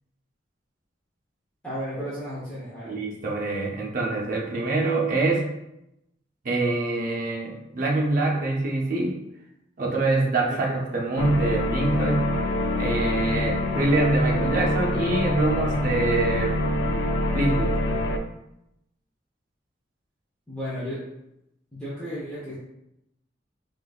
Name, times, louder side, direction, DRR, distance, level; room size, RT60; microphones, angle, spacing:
voice 1, 1.6-2.9 10.5-10.6 20.5-21.0 21.7-22.5, equal, 5° left, -10 dB, 0.7 m, -33 dB
voice 2, 2.8-5.5 6.4-9.2 9.8-12.3 12.8-16.6 17.3-17.7, right 2 dB, 50° right, -1 dB, 0.6 m, -25 dB
sound 1, 11.2-18.2, left 1 dB, 75° left, 0.3 m, -25 dB
3.7 x 2.5 x 2.3 m, 0.84 s
head